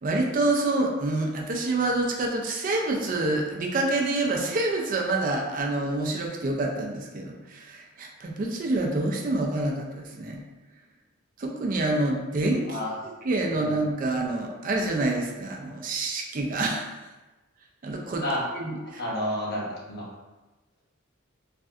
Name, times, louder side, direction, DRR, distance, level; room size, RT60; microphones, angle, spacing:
voice 1, 0.0-10.4 11.4-12.8 13.0-16.9 17.8-18.2 18.5-19.0, right 2 dB, 40° right, 1 dB, 0.4 m, -27 dB
voice 2, 12.7-13.0 13.5-13.7 18.2-18.5 19.0-20.0, left 1 dB, 50° left, -4 dB, 0.8 m, -30 dB
3.2 x 2.6 x 2.4 m, 1.1 s
head